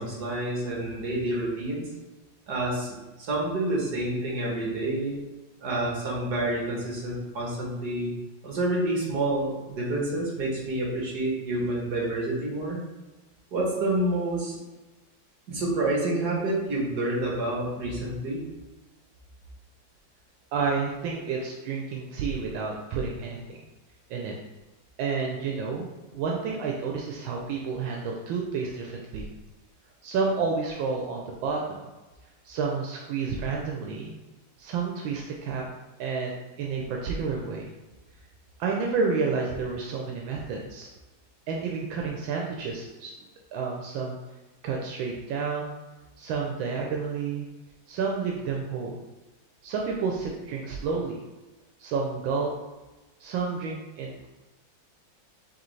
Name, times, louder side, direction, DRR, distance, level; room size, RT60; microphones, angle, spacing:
voice 1, 0.0-1.9 2.5-5.2 5.6-8.1 8.4-12.8 13.5-14.6 15.5-18.4, right 1 dB, 60° right, -3 dB, 1.6 m, -28 dB
voice 2, 20.5-23.6 24.1-24.3 25.0-29.3 30.0-31.8 32.4-34.1 34.6-35.6 36.0-37.7 38.6-40.9 41.5-43.1 43.5-44.2 44.6-45.8 46.2-47.5 47.9-48.9 49.6-51.2 51.8-52.5 53.2-54.3, right 5 dB, 85° right, 0 dB, 1.4 m, -30 dB
4.9 x 3.3 x 3.2 m, 1.1 s
omnidirectional pair, 2.1 m